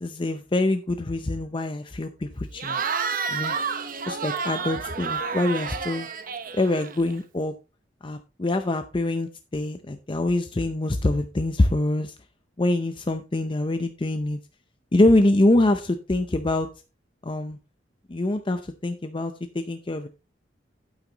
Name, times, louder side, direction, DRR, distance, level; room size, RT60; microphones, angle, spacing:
voice 1, 0.0-2.8 3.3-3.5 4.1-6.1 6.5-7.5 8.0-12.1 12.6-14.4 14.9-16.7 17.2-17.6 18.1-20.1, left 2 dB, 25° left, 7 dB, 0.6 m, -24 dB
Cheering / Crowd, 2.6-7.2, right 5 dB, 50° right, 1.0 m, -30 dB
9.1 x 8.9 x 2.9 m, 0.30 s
head